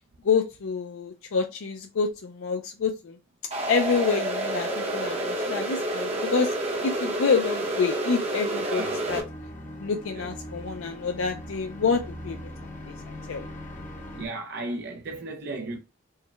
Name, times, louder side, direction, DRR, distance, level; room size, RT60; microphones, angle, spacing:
voice 1, 0.2-3.2 3.7-6.5 6.8-8.8 9.1-9.2 9.8-12.4 13.1-13.5, left 5 dB, 65° left, 0.4 m, -27 dB
sound 1, 3.5-9.2, right 1 dB, 30° right, 0.9 m, -29 dB
voice 2, 8.6-9.0 10.1-10.3 14.1-15.8, right 2 dB, 50° right, 0.5 m, -35 dB
sound 2, 9.1-14.3, left 1 dB, 35° left, 0.7 m, -40 dB
4.7 x 2.2 x 3.2 m
head